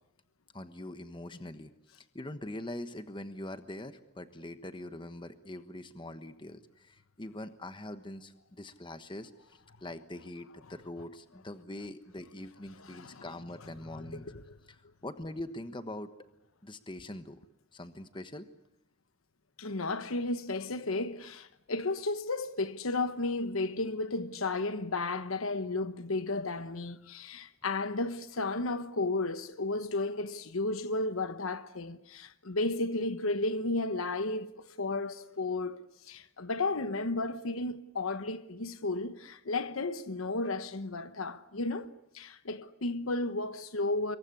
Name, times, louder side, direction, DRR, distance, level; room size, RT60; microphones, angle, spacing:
voice 1, 0.5-14.2 14.7-16.1 16.6-17.4 17.7-18.4, left 1 dB, 25° left, 1.2 m, -43 dB
voice 2, 12.9-13.2 14.0-14.6 19.6-44.2, left 2 dB, 85° left, 1.1 m, -33 dB
26.5 x 23.0 x 9.8 m
head